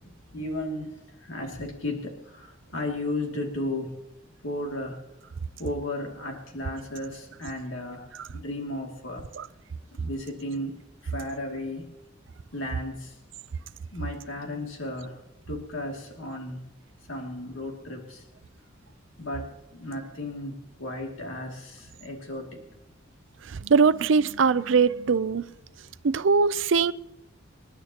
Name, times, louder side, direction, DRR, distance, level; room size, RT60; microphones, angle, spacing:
voice 1, 0.0-4.0 4.4-5.0 5.6-9.3 10.0-11.9 12.5-13.2 13.9-15.2 15.5-16.7 17.1-18.2 19.2-22.7, left 1 dB, 80° left, 1 dB, 2.5 m, -34 dB
voice 2, 23.6-25.4 26.0-26.9, right 5 dB, 65° right, 16 dB, 0.5 m, -21 dB
27.0 x 11.0 x 2.9 m, 0.89 s
head